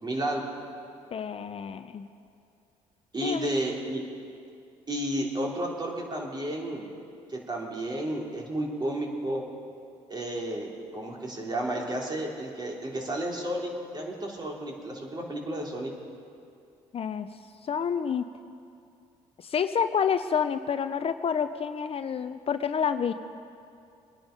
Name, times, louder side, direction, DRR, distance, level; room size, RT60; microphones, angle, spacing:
voice 1, 0.0-0.5 3.1-4.0 4.9-6.9 7.3-9.4 10.1-15.9, right 1 dB, 30° right, -1 dB, 3.5 m, -32 dB
voice 2, 1.1-2.1 3.2-3.5 16.9-17.3 17.7-18.3 19.4-23.1, left 7 dB, 45° left, 10 dB, 0.6 m, -28 dB
23.0 x 10.5 x 5.3 m, 2.5 s
supercardioid pair, 65°, 14 cm